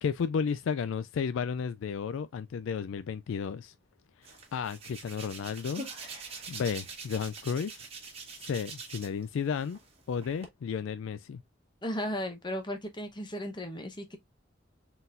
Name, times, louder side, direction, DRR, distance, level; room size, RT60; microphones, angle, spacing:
voice 1, 0.0-3.7 4.2-5.8 6.5-7.8 8.4-9.8 10.1-11.4, left 6 dB, 75° left, 0.3 m, -33 dB
Hands, 4.2-9.2 9.6-10.5, right 4 dB, 30° right, 1.4 m, -44 dB
voice 2, 11.8-14.2, equal, 25° left, 0.9 m, -35 dB
4.1 x 4.0 x 2.5 m
head